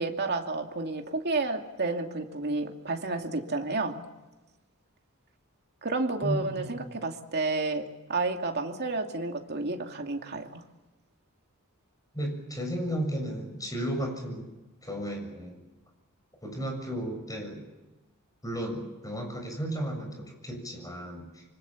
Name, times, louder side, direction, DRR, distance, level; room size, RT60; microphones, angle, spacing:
voice 1, 0.0-4.0 5.8-7.8 8.1-10.6, right 3 dB, 50° right, 3 dB, 2.6 m, -31 dB
voice 2, 6.2-6.9 12.1-14.5 14.8-15.6 16.4-17.6 18.4-21.4, equal, 15° left, 3 dB, 7.1 m, -34 dB
26.0 x 25.0 x 7.4 m, 1.1 s
head